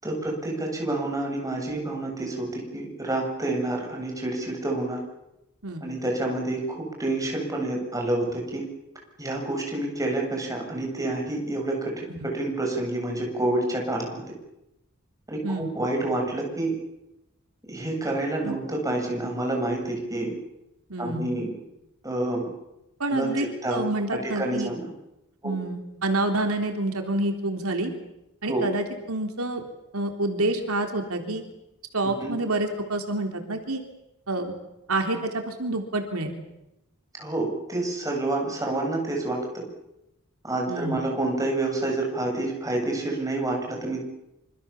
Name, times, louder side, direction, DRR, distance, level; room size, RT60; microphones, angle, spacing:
voice 1, 0.0-5.0 5.8-8.6 9.2-14.2 15.3-16.7 17.7-20.3 21.0-21.5 22.0-22.5 23.1-23.9 24.2-24.9 25.4-25.6 28.4-28.6 32.2-32.3 37.2-39.6 40.4-44.0, right 2 dB, 15° right, 0 dB, 7.5 m, -28 dB
voice 2, 20.9-21.3 23.0-24.7 25.4-27.9 28.4-29.6 29.9-31.4 31.9-33.8 34.3-34.5 34.9-36.3 40.7-41.0, right 2 dB, 90° right, 4 dB, 3.6 m, -28 dB
26.5 x 26.0 x 7.2 m, 0.91 s
head